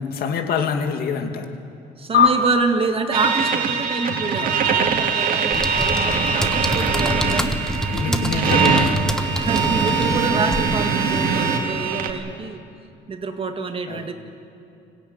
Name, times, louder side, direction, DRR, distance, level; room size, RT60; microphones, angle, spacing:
voice 1, 0.0-1.5 5.5-5.9 7.9-9.0 13.9-14.1, left 6 dB, 65° left, 5 dB, 2.4 m, -26 dB
voice 2, 2.0-7.6 8.1-8.5 9.3-12.6 13.1-14.1, right 4 dB, 35° right, 6 dB, 1.9 m, -27 dB
sound 1, 2.1-4.9, left 6 dB, 85° left, 4.0 m, -23 dB
sound 2, 3.1-12.1, right 5 dB, 55° right, 2.2 m, -22 dB
sound 3, 5.5-10.7, left 1 dB, 5° left, 1.4 m, -27 dB
24.5 x 16.5 x 9.4 m, 2.6 s
cardioid pair, 110°, 17 cm